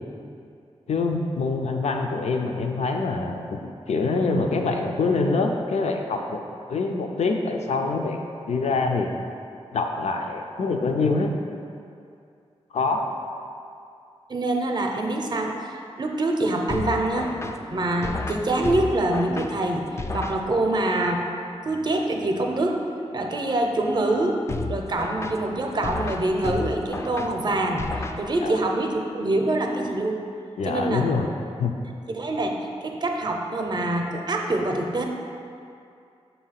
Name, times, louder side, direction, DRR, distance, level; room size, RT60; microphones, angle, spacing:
voice 1, 0.9-3.6 3.9-6.4 6.7-8.2 8.5-9.1 9.7-11.3 12.7-13.1 28.4-28.6 30.6-31.3 31.6-31.7, left 3 dB, 85° left, 3 dB, 0.5 m, -25 dB
voice 2, 14.3-17.3 17.7-19.8 20.1-21.3 21.7-22.8 23.1-24.4 24.7-27.9 28.2-30.2 30.7-31.1 32.1-32.5 32.8-35.0, right 2 dB, 40° right, 2 dB, 0.6 m, -25 dB
sound 1, 16.7-20.9 24.5-28.7, left 3 dB, 25° left, 0.3 m, -33 dB
7.0 x 2.8 x 5.7 m, 2.5 s
wide cardioid pair, 115°, 11 cm